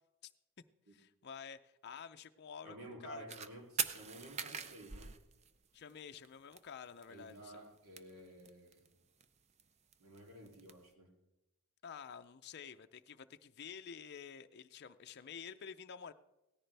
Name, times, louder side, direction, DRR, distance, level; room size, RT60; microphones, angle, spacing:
voice 1, 0.9-2.8 3.0-3.4 5.7-7.6 11.8-16.1, left 7 dB, 50° left, 8 dB, 0.5 m, -50 dB
voice 2, 2.6-5.1 7.1-9.0 10.0-11.1, right 1 dB, 80° right, 0 dB, 3.0 m, -52 dB
sound 1, 3.3-3.5 3.8-5.9 6.2-6.3 6.5-6.6 6.9-7.4 7.6-8.9 9.2-10.7, right 7 dB, 30° right, 0.5 m, -41 dB
17.5 x 14.0 x 3.4 m, 0.97 s
head